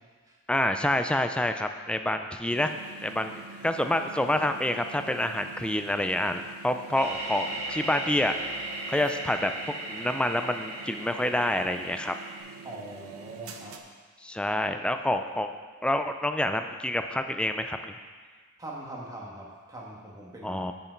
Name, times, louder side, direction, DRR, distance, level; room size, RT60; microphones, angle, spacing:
voice 1, 0.5-2.8 3.0-3.3 3.6-8.3 8.9-12.1 14.2-15.5 15.8-18.0 20.4-20.7, left 1 dB, 5° left, 7 dB, 0.4 m, -27 dB
sound 1, 2.5-13.8, right 5 dB, 75° right, 0.7 m, -47 dB
sound 2, 6.9-12.4, right 2 dB, 50° right, 2.1 m, -37 dB
voice 2, 12.6-13.8 18.6-20.6, right 2 dB, 15° right, -3 dB, 1.4 m, -42 dB
8.0 x 7.0 x 4.5 m, 1.5 s
head